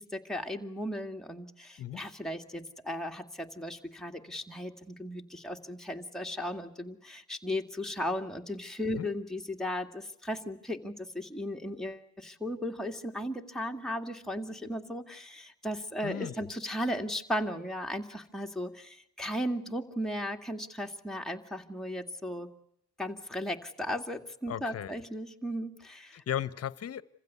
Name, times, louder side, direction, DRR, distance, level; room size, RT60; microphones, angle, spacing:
voice 1, 0.0-22.5 23.0-26.2, equal, ahead, 2 dB, 2.1 m, -36 dB
voice 2, 16.0-16.4 24.5-25.0 26.1-27.0, left 10 dB, 55° left, 18 dB, 1.0 m, -36 dB
27.5 x 15.5 x 9.5 m, 0.77 s
cardioid pair, 90°, 30 cm